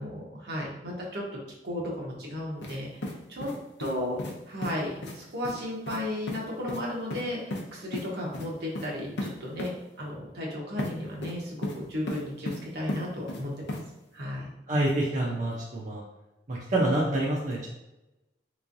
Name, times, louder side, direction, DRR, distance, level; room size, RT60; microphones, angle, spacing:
voice 1, 0.0-2.9 3.3-3.5 3.8-4.2 4.5-9.7 10.0-13.8 14.1-14.5, left 1 dB, 65° right, -3 dB, 1.0 m, -34 dB
sound 1, 2.6-2.8 3.0-3.9 4.2-4.3 4.6-4.7 5.0-5.2 5.4-5.6 5.9-6.0 6.3-6.4 6.7-6.8 7.1-7.6 7.9-8.1 8.3-8.5 8.7-8.9 9.2-9.3 9.6-9.7 10.8-10.9 11.2-11.8 12.1-12.6 12.9-13.4 13.7-13.8, left 1 dB, 75° left, 0.6 m, -34 dB
voice 2, 14.7-16.0 16.5-17.8, right 1 dB, 45° right, -5 dB, 0.6 m, -27 dB
3.6 x 3.1 x 2.6 m, 0.94 s
head